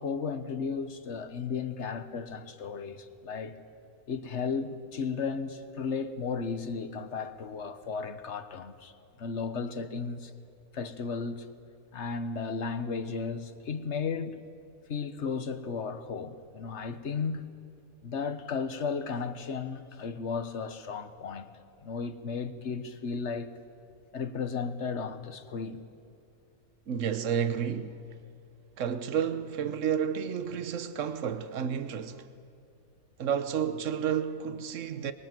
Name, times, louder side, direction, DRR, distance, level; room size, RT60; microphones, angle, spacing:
voice 1, 0.0-3.6 4.1-8.9 9.2-10.3 10.7-11.5 11.9-14.4 14.9-17.5 18.0-21.5 21.8-23.5 24.1-25.8, left 5 dB, 55° left, 1.5 m, -34 dB
voice 2, 26.9-28.0 28.8-32.3 33.2-35.1, right 8 dB, 60° right, 1.3 m, -31 dB
24.5 x 22.5 x 7.6 m
omnidirectional pair, 1.5 m